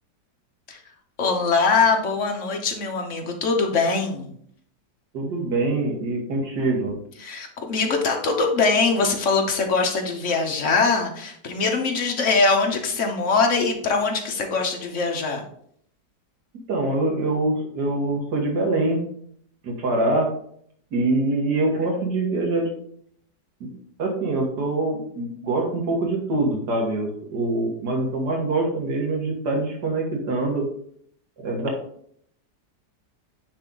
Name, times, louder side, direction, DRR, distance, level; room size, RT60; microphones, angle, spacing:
voice 1, 1.2-4.3 7.2-15.4, left 4 dB, 50° left, 3 dB, 1.2 m, -22 dB
voice 2, 5.1-6.9 16.7-19.0 19.6-20.3 20.9-22.7 23.6-23.7 24.0-30.7 31.4-31.7, right 2 dB, 70° right, 0 dB, 2.1 m, -24 dB
9.5 x 3.4 x 3.9 m, 0.65 s
omnidirectional pair, 1.9 m